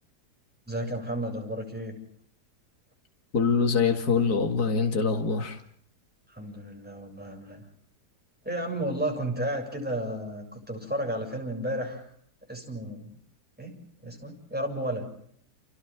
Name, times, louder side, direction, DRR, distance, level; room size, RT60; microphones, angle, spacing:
voice 1, 0.7-2.0 6.3-7.7 8.4-12.1 12.5-13.1 13.6-15.0, right 1 dB, 5° right, 1 dB, 7.1 m, -33 dB
voice 2, 3.3-5.6, left 5 dB, 65° left, 4 dB, 2.6 m, -24 dB
30.0 x 29.5 x 3.7 m, 0.66 s
omnidirectional pair, 1.8 m